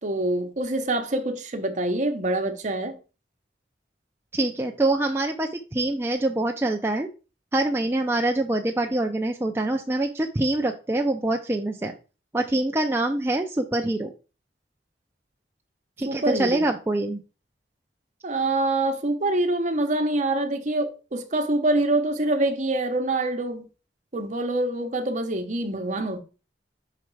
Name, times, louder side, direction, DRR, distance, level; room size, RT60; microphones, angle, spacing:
voice 1, 0.0-3.0 16.1-16.7 18.2-23.7 24.1-26.2, right 2 dB, 40° right, 0.9 m, -25 dB
voice 2, 4.3-7.1 7.5-11.9 12.3-14.1 16.0-17.2, right 2 dB, 15° right, 0.4 m, -25 dB
5.7 x 4.1 x 4.7 m
head